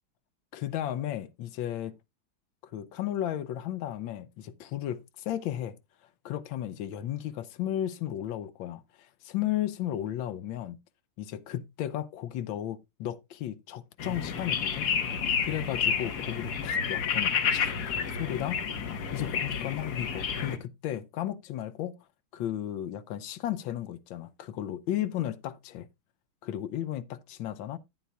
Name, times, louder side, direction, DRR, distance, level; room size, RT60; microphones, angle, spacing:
voice 1, 0.5-2.0 2.7-5.7 6.2-8.8 9.2-10.8 11.2-14.9 15.4-18.6 19.1-21.9 22.3-25.9 26.4-27.8, left 12 dB, 75° left, 1.3 m, -34 dB
sound 1, 14.0-20.6, left 7 dB, 55° left, 1.4 m, -30 dB
11.5 x 9.2 x 2.2 m
omnidirectional pair, 2.3 m